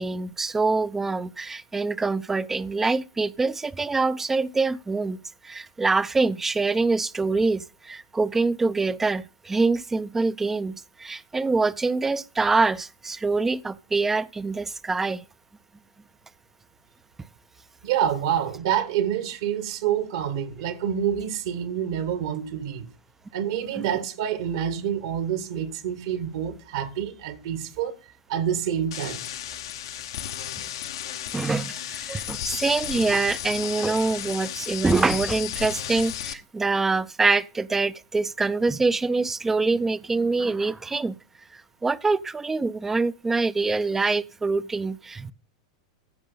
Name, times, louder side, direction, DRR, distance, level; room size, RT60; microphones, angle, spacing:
voice 1, 0.0-5.2 5.4-15.2 23.8-23.9 31.3-41.2 41.5-45.3, right 3 dB, 10° right, 0.5 m, -25 dB
voice 2, 17.8-22.9 23.3-27.9 28.3-29.2, right 9 dB, 60° right, 1.5 m, -27 dB
sound 1, 28.9-36.3, left 11 dB, 60° left, 0.8 m, -33 dB
14.5 x 5.4 x 3.8 m
figure-of-eight pair, 90°, 3 cm